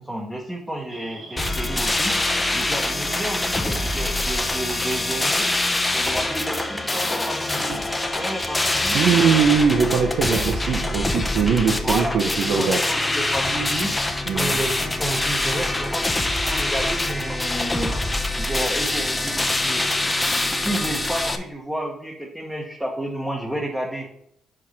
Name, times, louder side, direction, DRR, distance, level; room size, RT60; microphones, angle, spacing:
voice 1, 0.0-2.1 2.5-5.5 5.9-7.8 8.1-9.0 11.8-13.9 14.3-18.0 18.4-24.1, right 1 dB, 5° right, -1 dB, 1.1 m, -31 dB
sound 1, 0.9-10.6, right 2 dB, 50° right, 1.5 m, -43 dB
sound 2, 1.4-21.4, left 2 dB, 15° left, 0.8 m, -24 dB
voice 2, 8.9-12.8 14.3-14.6, right 6 dB, 75° right, 3 dB, 0.8 m, -21 dB
6.2 x 4.4 x 4.9 m, 0.71 s
cardioid pair, 90°, 0 cm